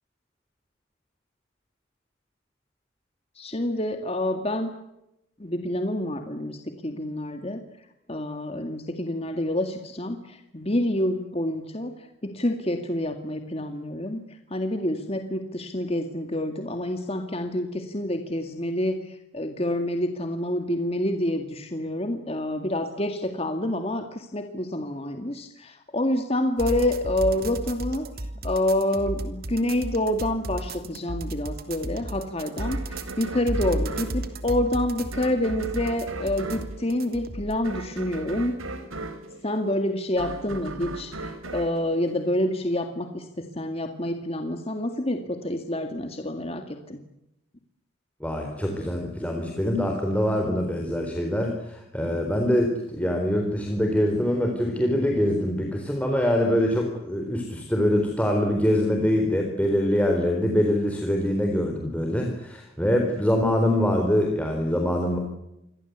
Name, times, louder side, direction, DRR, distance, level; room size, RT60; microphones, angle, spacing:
voice 1, 3.4-4.7 5.4-7.6 8.1-11.9 12.2-14.2 14.5-28.1 28.4-38.6 39.4-47.0, left 1 dB, 30° left, 6 dB, 2.1 m, -27 dB
sound 1, 26.6-37.6, right 1 dB, 45° right, 3.0 m, -33 dB
sound 2, 32.6-42.8, right 2 dB, 90° right, 4.2 m, -38 dB
voice 2, 48.2-65.2, equal, 5° left, 2 dB, 4.2 m, -24 dB
28.5 x 23.5 x 8.2 m, 0.87 s
head